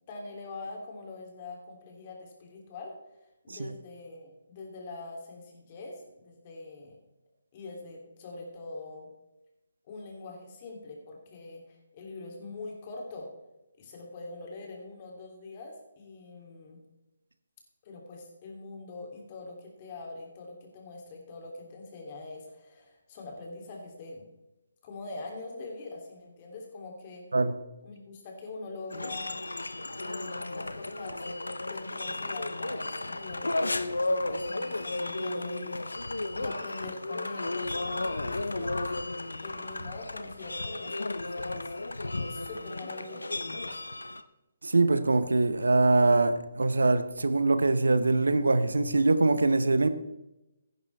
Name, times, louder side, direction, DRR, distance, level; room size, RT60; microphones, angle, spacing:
voice 1, 0.1-2.9 3.4-7.0 7.5-9.1 9.9-13.3 13.8-16.8 17.8-24.3 24.8-27.2 27.8-29.4 29.9-36.0 36.3-38.9 39.4-41.7 42.2-43.8, left 3 dB, 35° left, 3.2 m, -43 dB
sound 1, 28.9-44.2, left 2 dB, 80° left, 0.7 m, -34 dB
voice 2, 44.6-49.9, right 3 dB, 75° right, 0.8 m, -23 dB
14.5 x 10.5 x 3.5 m
figure-of-eight pair, 145°, 0 cm